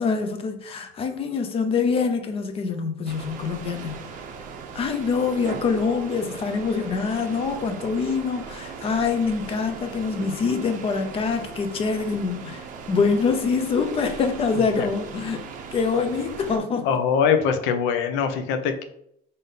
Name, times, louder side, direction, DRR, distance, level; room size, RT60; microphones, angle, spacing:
voice 1, 0.0-4.2 4.7-17.0, left 5 dB, 30° left, 0.5 m, -25 dB
sound 1, 3.1-16.6, right 5 dB, 45° right, 0.5 m, -39 dB
voice 2, 16.8-18.8, left 7 dB, 80° left, 0.6 m, -22 dB
3.6 x 2.7 x 3.7 m
cardioid pair, 155°, 19 cm